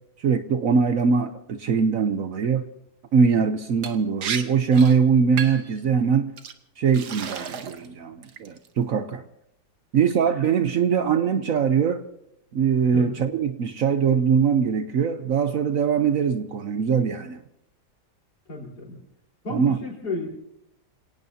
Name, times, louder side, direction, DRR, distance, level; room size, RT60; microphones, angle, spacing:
voice 1, 0.2-2.6 3.1-6.3 6.8-9.2 9.9-12.0 12.5-17.4 19.5-19.8, right 6 dB, 60° right, 9 dB, 1.1 m, -22 dB
Liquid, 3.8-4.4 4.7-5.0 5.4-5.7 6.4-6.5 6.9-7.9 8.2-8.7, right 7 dB, 75° right, 1.6 m, -32 dB
voice 2, 18.5-19.0 19.4-20.3, left 3 dB, 80° left, -1 dB, 4.8 m, -32 dB
28.0 x 18.0 x 2.8 m, 0.80 s
omnidirectional pair, 1.7 m